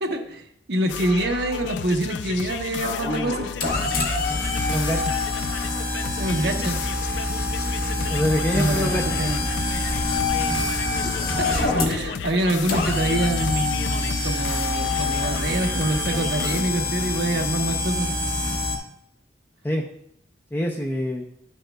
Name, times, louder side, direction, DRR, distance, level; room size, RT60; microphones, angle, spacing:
voice 1, 0.0-3.5 6.2-6.8 8.5-9.4 11.0-18.1, right 1 dB, 65° right, 2 dB, 1.0 m, -26 dB
sound 1, 0.9-16.6, left 7 dB, 80° left, 0.3 m, -33 dB
sound 2, 2.8-18.8, left 2 dB, 55° left, 1.3 m, -26 dB
voice 2, 4.7-5.1 8.1-9.2 19.6-19.8 20.5-21.2, left 1 dB, 10° left, 1 dB, 0.5 m, -25 dB
11.0 x 6.4 x 2.3 m, 0.74 s
head